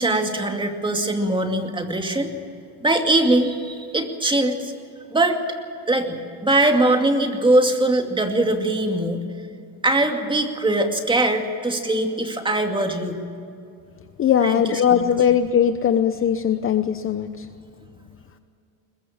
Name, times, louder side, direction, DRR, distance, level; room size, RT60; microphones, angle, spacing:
voice 1, 0.0-2.3 2.8-4.7 5.1-5.4 5.9-9.2 9.8-13.2 14.4-15.1, right 2 dB, 10° right, 4 dB, 2.4 m, -21 dB
voice 2, 14.2-17.5, left 8 dB, 30° left, 10 dB, 0.8 m, -20 dB
21.5 x 21.0 x 7.3 m, 2.5 s
cardioid pair, 130°, 41 cm